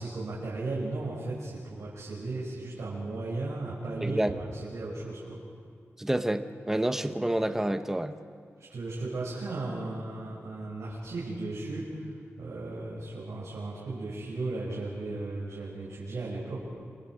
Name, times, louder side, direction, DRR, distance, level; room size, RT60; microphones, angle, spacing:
voice 1, 0.0-5.4 8.6-16.6, right 2 dB, 80° right, -7 dB, 6.6 m, -36 dB
voice 2, 4.0-4.3 6.0-8.2, right 1 dB, 10° right, 8 dB, 1.0 m, -28 dB
29.5 x 25.5 x 5.1 m, 2.2 s
wide cardioid pair, 150°, 5 cm